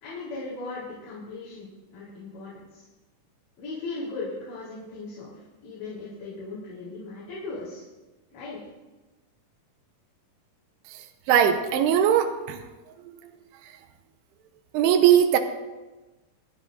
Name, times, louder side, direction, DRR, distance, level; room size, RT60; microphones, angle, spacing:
voice 1, 0.0-2.8 3.6-7.8 8.3-8.6, left 3 dB, 90° left, -10 dB, 6.1 m, -38 dB
voice 2, 11.3-12.6 13.1-13.2 14.7-15.4, right 9 dB, 80° right, 5 dB, 2.9 m, -20 dB
28.5 x 10.0 x 2.7 m, 1.2 s
omnidirectional pair, 4.8 m